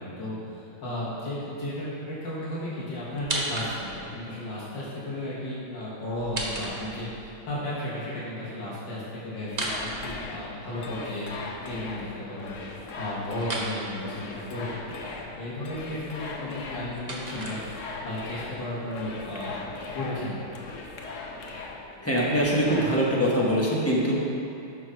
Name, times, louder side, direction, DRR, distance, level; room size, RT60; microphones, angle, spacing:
voice 1, 0.0-20.5, left 1 dB, 65° left, -9 dB, 2.1 m, -34 dB
sound 1, 3.1-4.1 6.1-7.3 9.4-10.8 13.4-13.7 16.5-18.1, right 1 dB, 65° right, 0.4 m, -34 dB
sound 2, 9.5-23.0, left 3 dB, 85° left, 0.6 m, -39 dB
voice 2, 22.0-24.1, equal, 20° left, -6 dB, 0.4 m, -23 dB
6.6 x 6.3 x 5.0 m, 2.8 s
omnidirectional pair, 2.2 m